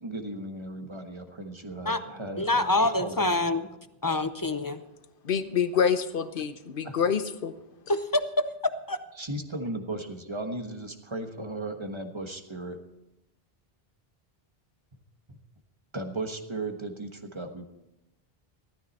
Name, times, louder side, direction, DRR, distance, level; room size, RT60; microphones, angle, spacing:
voice 1, 0.0-3.3 6.8-6.9 9.2-12.8 15.9-17.7, right 2 dB, 30° right, 5 dB, 1.3 m, -36 dB
voice 2, 2.4-3.7 4.0-4.8 7.9-8.2 8.9-9.0, left 2 dB, 25° left, 11 dB, 0.5 m, -26 dB
voice 3, 5.2-7.5, left 7 dB, 60° left, 11 dB, 1.0 m, -26 dB
15.0 x 13.0 x 4.2 m, 0.92 s
omnidirectional pair, 1.0 m